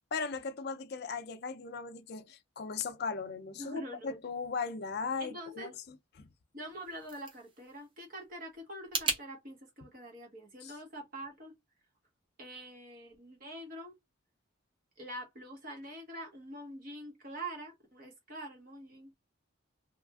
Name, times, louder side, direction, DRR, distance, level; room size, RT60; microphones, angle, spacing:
voice 1, 0.1-6.0 10.6-10.7, left 5 dB, 50° left, 0.4 m, -38 dB
voice 2, 3.5-4.2 5.2-5.7 6.5-11.5 12.4-14.0 15.0-19.1, right 1 dB, 40° right, 1.2 m, -45 dB
sound 1, 6.6-9.2, right 3 dB, 25° right, 0.6 m, -38 dB
2.9 x 2.4 x 2.3 m
head